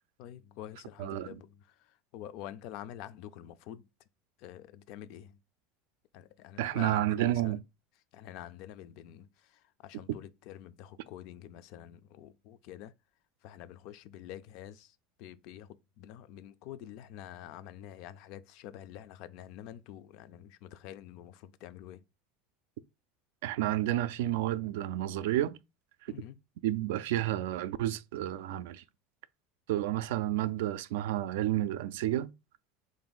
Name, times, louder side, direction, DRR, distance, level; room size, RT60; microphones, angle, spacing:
voice 1, 0.2-3.9 4.4-5.4 6.1-7.6 8.1-12.9 13.4-22.0 26.1-26.4, left 11 dB, 55° left, 0.3 m, -47 dB
voice 2, 1.0-1.4 6.6-7.6 10.1-10.2 23.4-25.6 26.0-26.1 26.6-28.8 29.7-32.3, right 13 dB, 85° right, 0.3 m, -30 dB
3.7 x 2.6 x 3.8 m
supercardioid pair, 145°, 0 cm